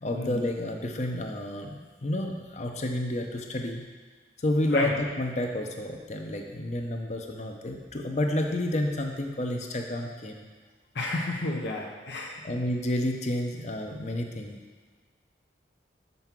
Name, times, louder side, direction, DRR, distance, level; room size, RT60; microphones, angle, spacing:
voice 1, 0.0-1.7 2.0-3.8 4.4-10.4 12.4-14.6, left 1 dB, 40° left, 3 dB, 0.7 m, -30 dB
voice 2, 10.9-12.4, left 2 dB, 75° left, -1 dB, 0.9 m, -31 dB
5.6 x 5.4 x 6.1 m, 1.5 s
head